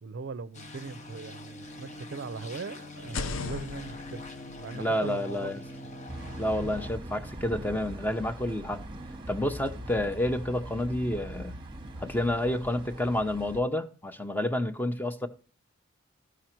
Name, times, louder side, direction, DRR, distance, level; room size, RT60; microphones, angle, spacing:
voice 1, 0.0-4.2 4.6-6.0, right 4 dB, 60° right, 0.5 m, -40 dB
sound 1, 0.5-6.9, left 1 dB, 35° left, 0.8 m, -43 dB
sound 2, 3.0-6.8, left 4 dB, 75° left, 0.5 m, -40 dB
voice 2, 4.7-5.6 6.4-8.8 9.3-11.5 12.0-15.3, left 1 dB, 10° left, 0.6 m, -29 dB
sound 3, 6.1-13.6, right 1 dB, 25° right, 0.9 m, -41 dB
13.5 x 4.9 x 4.4 m
head